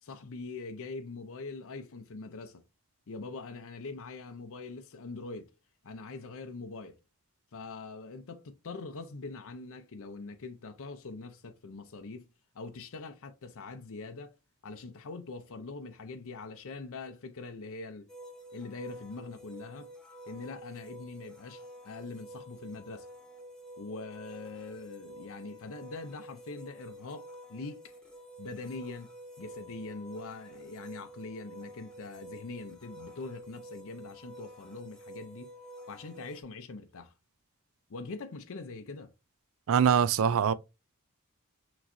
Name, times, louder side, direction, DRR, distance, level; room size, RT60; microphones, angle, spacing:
voice 1, 0.0-2.6 3.1-5.5 5.8-7.0 7.5-12.3 12.5-14.3 14.6-18.1 18.5-19.9 20.3-23.1 23.8-27.9 28.4-29.1 29.4-35.5 35.9-37.1 37.9-39.1, left 3 dB, 65° left, 0.6 m, -43 dB
sound 1, 18.1-36.4, right 1 dB, 5° left, 1.0 m, -49 dB
voice 2, 39.7-40.5, right 7 dB, 65° right, 0.4 m, -23 dB
6.0 x 3.1 x 2.6 m
head